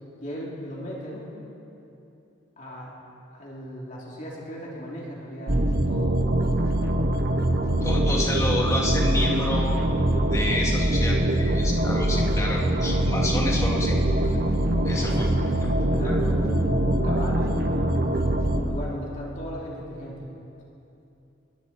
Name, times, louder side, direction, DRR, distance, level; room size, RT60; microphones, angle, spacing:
voice 1, 0.2-1.3 2.6-3.0 3.3-6.2 15.0-15.6 15.9-18.0 18.5-20.3, equal, 40° left, -4 dB, 3.4 m, -36 dB
sound 1, 5.5-18.6, right 1 dB, 50° right, 1.4 m, -23 dB
voice 2, 7.8-9.8 10.3-14.0 14.8-15.3, left 1 dB, 15° left, -3 dB, 3.0 m, -29 dB
26.0 x 22.0 x 4.5 m, 2.9 s
head